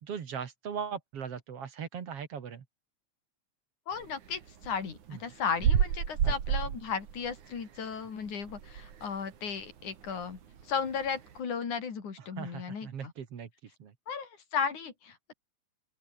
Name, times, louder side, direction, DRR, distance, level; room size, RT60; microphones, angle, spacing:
voice 1, 0.0-2.7 5.1-5.2 6.2-6.6 12.2-13.9, right 7 dB, 55° right, 2.7 m, -39 dB
voice 2, 3.9-10.4 10.6-13.1 14.1-15.3, left 6 dB, 80° left, 5.0 m, -35 dB
sound 1, 4.0-9.2 9.6-9.7 10.0-11.4, right 8 dB, 80° right, 3.7 m, -30 dB
open air
omnidirectional pair, 3.4 m